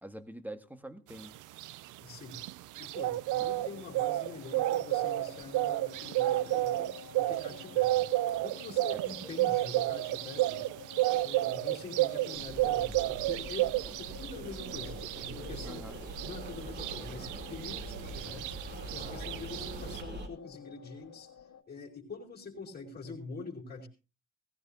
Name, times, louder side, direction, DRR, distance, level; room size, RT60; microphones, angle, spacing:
voice 1, 0.0-1.3 3.5-3.6 8.9-9.3 15.6-16.0 19.3-19.6, right 1 dB, 5° right, 9 dB, 1.7 m, -46 dB
sound 1, 1.2-20.0, right 16 dB, 90° right, 0.6 m, -32 dB
voice 2, 2.0-2.4 2.8-8.1 8.4-10.6 11.1-15.9 16.2-18.6 18.9-23.9, left 4 dB, 35° left, -3 dB, 4.4 m, -45 dB
sound 2, 3.6-21.6, left 8 dB, 70° left, 1.7 m, -51 dB
sound 3, 12.3-20.3, right 2 dB, 35° right, 4.2 m, -43 dB
19.0 x 15.0 x 2.9 m, 0.32 s
cardioid pair, 90°, 30 cm